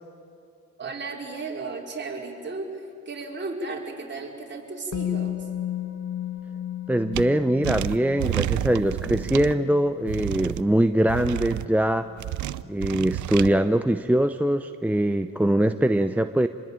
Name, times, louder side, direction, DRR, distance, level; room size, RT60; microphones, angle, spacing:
voice 1, 0.8-5.5, right 3 dB, 35° right, 0 dB, 4.8 m, -34 dB
Musical instrument, 4.9-12.8 13.1-13.3, left 10 dB, 65° left, 1.8 m, -35 dB
voice 2, 6.9-12.1 12.6-16.5, right 1 dB, 5° right, 9 dB, 0.7 m, -22 dB
sound 1, 7.1-7.2 7.6-9.5 10.1-10.6 11.1-11.7 12.2-13.5, right 15 dB, 75° right, 0.7 m, -29 dB
27.5 x 21.0 x 9.0 m, 2.5 s
cardioid pair, 90°, 30 cm